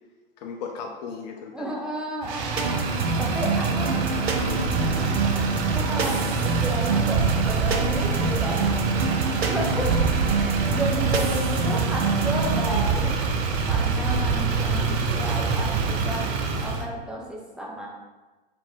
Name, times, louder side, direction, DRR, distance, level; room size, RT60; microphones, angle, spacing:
voice 1, 0.4-1.8 3.8-5.0, left 5 dB, 45° left, 3 dB, 0.5 m, -37 dB
voice 2, 1.5-3.9 5.7-8.6 9.5-9.9 10.4-13.2 13.7-17.9, equal, 5° right, -3 dB, 0.7 m, -32 dB
Motor vehicle (road), 2.2-16.8, right 4 dB, 40° right, 0.6 m, -25 dB
sound 1, 2.6-12.9, right 4 dB, 80° right, 0.7 m, -27 dB
3.4 x 2.9 x 4.5 m, 1.2 s
hypercardioid pair, 100°, 31 cm